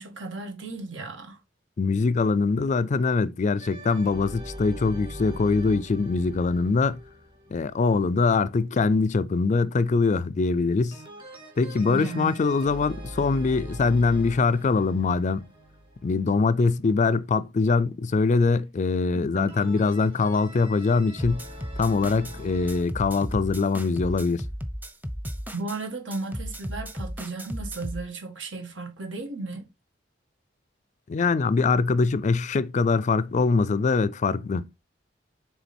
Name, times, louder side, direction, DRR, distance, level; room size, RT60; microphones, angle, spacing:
voice 1, 0.0-1.4 11.9-12.4 19.1-19.5 25.5-29.7, right 3 dB, 85° right, 2.0 m, -35 dB
voice 2, 1.8-7.0 7.5-11.0 11.6-15.5 16.0-21.4 21.8-24.4 31.1-34.7, left 4 dB, 40° left, 0.4 m, -23 dB
sound 1, 3.6-8.3 10.9-16.7 19.5-22.8, equal, 30° right, 2.0 m, -42 dB
sound 2, 21.2-22.4 22.7-25.8 26.1-28.0, equal, 10° right, 0.7 m, -35 dB
7.0 x 3.7 x 4.3 m
head